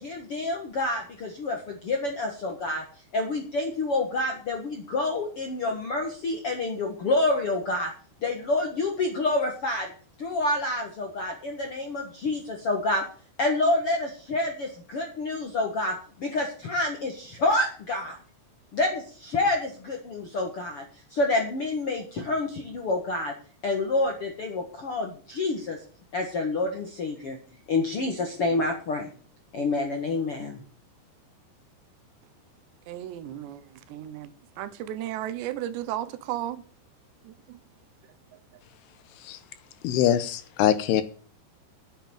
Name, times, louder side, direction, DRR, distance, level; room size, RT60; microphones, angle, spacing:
voice 1, 0.0-2.8 3.1-7.9 8.2-9.9 10.2-13.0 13.4-18.2 18.7-20.8 21.1-23.3 23.6-25.8 26.1-27.4 27.7-29.1 29.5-30.6, left 2 dB, 60° left, 1.5 m, -28 dB
voice 2, 32.9-36.6 37.2-37.6 38.3-38.4, right 12 dB, 80° right, 3.0 m, -35 dB
voice 3, 39.8-41.0, left 10 dB, 80° left, 2.6 m, -23 dB
9.2 x 7.4 x 8.8 m
omnidirectional pair, 5.1 m